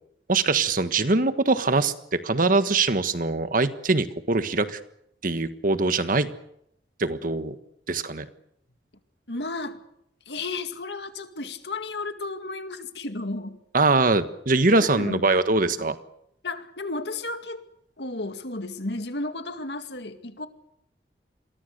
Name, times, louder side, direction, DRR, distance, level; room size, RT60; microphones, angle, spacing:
voice 1, 0.3-4.8 5.2-6.3 7.0-7.5 7.9-8.3 13.7-15.9, right 3 dB, 50° right, 11 dB, 1.4 m, -22 dB
voice 2, 9.3-9.8 10.3-13.6 14.8-15.2 16.4-17.6 18.0-20.5, left 2 dB, 75° left, 8 dB, 2.2 m, -33 dB
28.5 x 22.0 x 6.7 m, 0.78 s
head